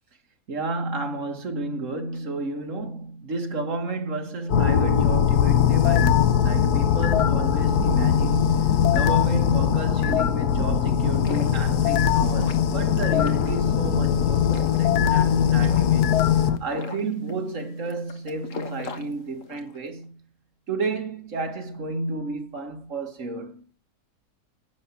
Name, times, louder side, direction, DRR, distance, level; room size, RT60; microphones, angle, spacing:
voice 1, 0.5-8.5 8.9-16.1 16.6-20.2 20.7-23.6, right 3 dB, 55° right, 2.2 m, -32 dB
sound 1, 4.5-16.6, left 8 dB, 80° left, 1.4 m, -20 dB
sound 2, 10.9-19.8, left 5 dB, 55° left, 1.8 m, -40 dB
10.5 x 7.6 x 7.2 m
omnidirectional pair, 1.6 m